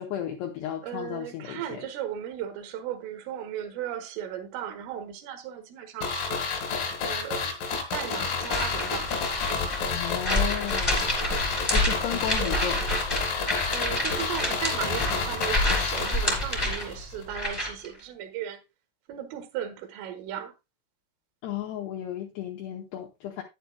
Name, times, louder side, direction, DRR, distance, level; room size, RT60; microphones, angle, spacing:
voice 1, 0.0-1.9 9.9-11.0 11.7-12.8 21.4-23.4, left 10 dB, 80° left, 2.5 m, -34 dB
voice 2, 0.8-6.4 7.0-7.5 7.9-9.1 12.4-12.8 13.7-18.6 19.1-20.5, right 10 dB, 80° right, 3.7 m, -36 dB
sound 1, 6.0-17.0 17.2-17.3, left 5 dB, 60° left, 2.6 m, -30 dB
sound 2, 8.3-17.9, left 1 dB, 20° left, 1.0 m, -29 dB
11.5 x 9.2 x 2.2 m
omnidirectional pair, 5.8 m